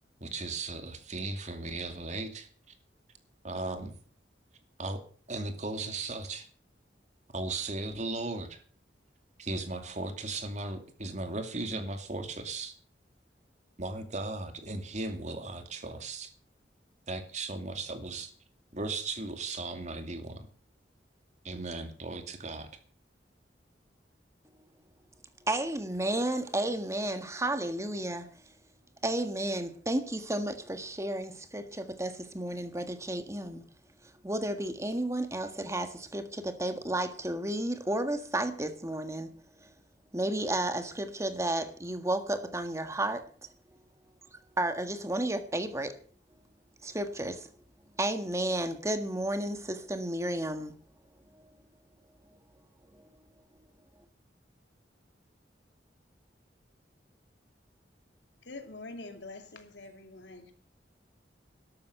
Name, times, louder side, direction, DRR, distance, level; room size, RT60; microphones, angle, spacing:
voice 1, 0.2-2.5 3.4-4.0 4.8-5.0 5.3-6.5 7.3-8.6 9.4-12.7 13.8-16.3 17.1-18.3 18.7-20.5 21.4-22.7, right 2 dB, 40° right, 2.5 m, -36 dB
voice 2, 25.5-28.3 29.0-33.7 34.2-39.3 39.6-39.7 40.1-43.5 44.6-46.0 46.8-47.5 48.0-50.7 51.3-51.5, right 1 dB, 15° right, 1.6 m, -32 dB
voice 3, 58.4-60.5, left 2 dB, 80° left, 2.6 m, -45 dB
13.0 x 12.5 x 6.6 m
head